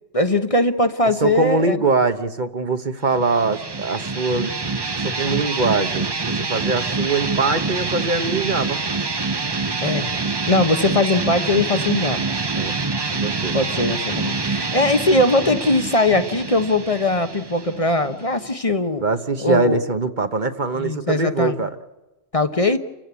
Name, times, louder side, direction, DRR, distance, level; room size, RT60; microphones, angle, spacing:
voice 1, 0.1-1.8 9.8-10.2 10.5-12.3 13.5-19.0 19.4-19.8 20.7-21.6 22.3-22.8, left 2 dB, 35° left, 8 dB, 1.1 m, -20 dB
voice 2, 1.2-4.8 5.0-8.8 12.5-12.8 13.1-13.6 19.0-21.7, right 3 dB, 50° right, 9 dB, 1.3 m, -23 dB
sound 1, 3.1-18.5, right 3 dB, 25° right, 0.8 m, -26 dB
29.0 x 15.0 x 8.3 m, 1.1 s
omnidirectional pair, 1.1 m